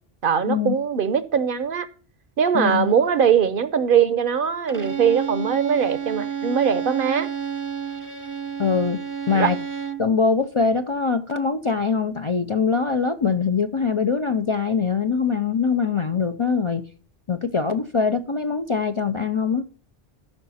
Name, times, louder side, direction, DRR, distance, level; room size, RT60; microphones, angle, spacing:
voice 1, 0.2-1.9 2.4-7.3 9.3-9.5, right 7 dB, 60° right, 0.9 m, -21 dB
voice 2, 2.5-2.9 8.6-9.0 9.3-9.6 10.0-16.8 17.3-19.6, left 5 dB, 40° left, 0.5 m, -23 dB
Bowed string instrument, 4.7-10.1, right 7 dB, 20° right, 0.7 m, -30 dB
13.5 x 5.6 x 4.1 m
omnidirectional pair, 1.1 m